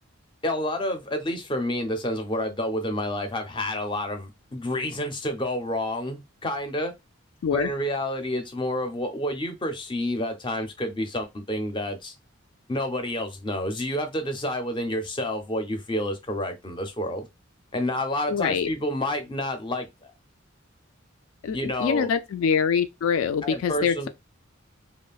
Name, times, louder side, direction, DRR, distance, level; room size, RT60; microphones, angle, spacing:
voice 1, 0.4-6.9 7.5-12.1 12.7-17.3 17.7-20.1 21.5-22.1 23.4-24.1, left 1 dB, 25° left, 0.4 m, -29 dB
voice 2, 18.3-18.7 21.4-24.1, left 6 dB, 90° left, 0.3 m, -24 dB
3.1 x 2.0 x 2.3 m
head